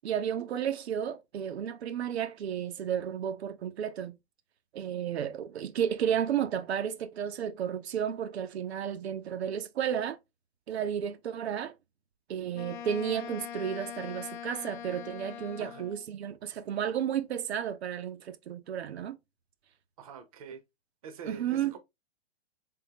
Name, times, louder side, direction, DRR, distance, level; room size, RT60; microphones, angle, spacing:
voice 1, 0.0-4.2 4.7-10.2 10.7-11.7 12.3-19.2 21.3-21.7, right 9 dB, 80° right, 0.7 m, -32 dB
Wind instrument woodwind instrument, 12.5-16.1, left 10 dB, 50° left, 0.5 m, -42 dB
voice 2, 20.0-20.6 21.0-21.8, right 6 dB, 35° right, 0.7 m, -45 dB
3.8 x 3.7 x 2.7 m
hypercardioid pair, 175°, 32 cm